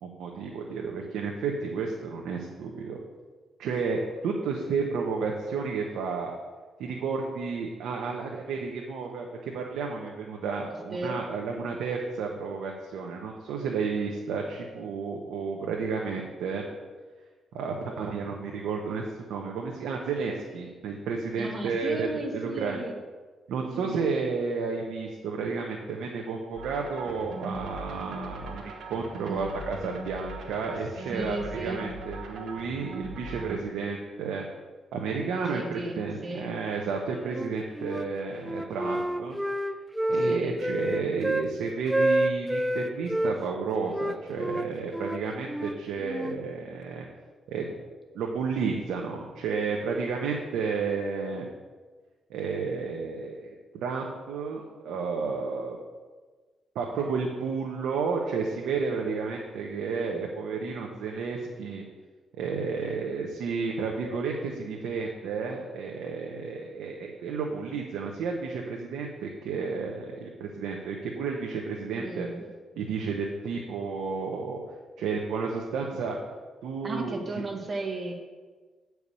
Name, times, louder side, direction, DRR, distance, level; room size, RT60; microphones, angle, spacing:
voice 1, 0.0-3.0 3.6-6.3 6.8-16.6 17.5-19.0 19.3-22.8 23.5-34.5 34.9-39.4 40.1-47.0 47.5-47.6 48.1-51.5 52.3-53.5 53.8-55.8 56.7-61.8 62.3-72.3 72.8-74.6 75.0-76.2 76.6-77.4, right 5 dB, 90° right, 0 dB, 0.9 m, -32 dB
voice 2, 10.9-11.2 21.4-22.9 23.7-24.0 29.3-29.6 31.1-31.9 35.4-36.5 40.3-40.5 71.8-72.5 76.8-78.1, right 2 dB, 35° right, 2 dB, 1.3 m, -35 dB
sound 1, 26.5-33.6, right 2 dB, 70° right, 1.3 m, -39 dB
Wind instrument woodwind instrument, 37.3-38.1 38.4-41.5 41.9-43.3 43.9-46.4, right 1 dB, 5° right, 0.4 m, -28 dB
8.5 x 4.7 x 6.8 m, 1.4 s
cardioid pair, 115°, 0 cm